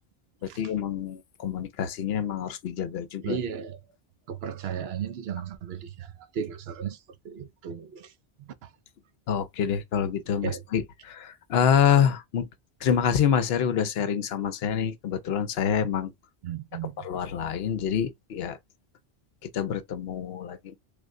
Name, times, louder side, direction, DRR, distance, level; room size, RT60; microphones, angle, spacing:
voice 1, 0.4-3.4 9.3-12.5 12.8-16.1 17.0-18.6 19.4-20.7, left 8 dB, 75° left, 0.8 m, -26 dB
voice 2, 3.2-3.8 4.3-8.1 8.4-8.7 10.4-10.6 16.4-17.1, right 8 dB, 75° right, 0.8 m, -35 dB
3.4 x 2.1 x 3.6 m
omnidirectional pair, 1.1 m